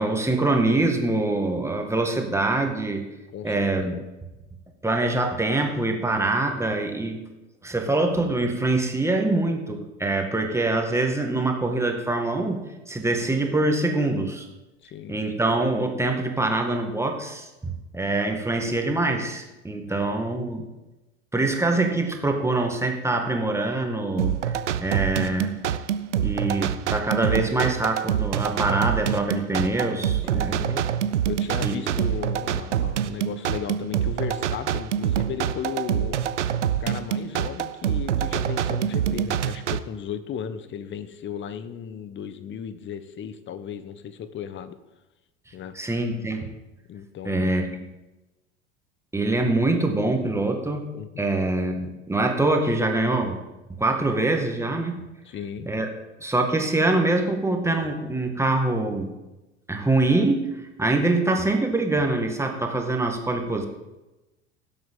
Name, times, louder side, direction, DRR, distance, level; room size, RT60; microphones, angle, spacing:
voice 1, 0.0-3.0 3.4-3.9 4.8-7.2 7.6-14.5 15.1-20.7 21.3-25.6 26.2-30.6 31.6-31.7 45.7-46.5 47.2-47.7 49.1-50.9 51.2-53.4 53.8-55.0 55.7-55.9 56.2-59.1 59.7-60.5 60.8-63.7, right 2 dB, 10° right, 3 dB, 1.8 m, -24 dB
voice 2, 3.3-4.1 10.5-10.7 14.8-15.2 19.9-20.3 30.3-36.2 36.6-44.8 45.5-45.8 46.9-47.5 50.9-51.4 55.2-55.7, left 8 dB, 35° left, 12 dB, 1.1 m, -35 dB
sound 1, 24.2-39.8, right 9 dB, 80° right, 0.6 m, -26 dB
17.5 x 7.9 x 3.8 m, 1.0 s
figure-of-eight pair, 75°, 35 cm